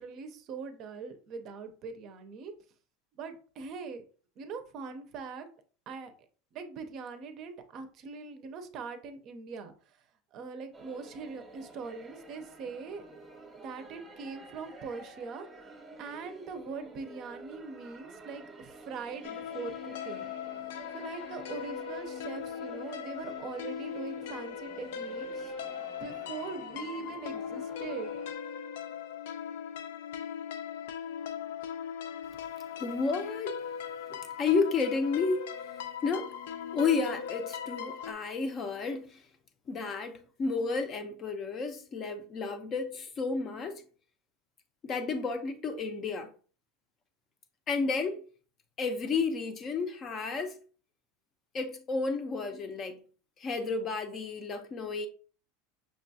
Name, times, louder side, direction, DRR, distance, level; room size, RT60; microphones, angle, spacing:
voice 1, 0.0-2.5 3.1-4.0 4.4-5.5 5.9-6.1 6.5-10.0 10.3-13.1 13.6-15.7 16.0-20.3 20.9-25.5 26.0-28.1, right 5 dB, 45° right, 0.5 m, -42 dB
sound 1, 10.7-28.3, right 2 dB, 15° right, 0.8 m, -51 dB
sound 2, 19.2-38.1, left 8 dB, 85° left, 0.4 m, -39 dB
voice 2, 32.8-33.6 34.1-35.5 36.0-36.3 36.7-39.2 39.7-43.8 44.8-46.3 47.7-48.2 48.8-50.6 51.5-53.0 53.4-55.1, left 4 dB, 30° left, 0.5 m, -31 dB
5.7 x 2.3 x 2.7 m
supercardioid pair, 140°, 0 cm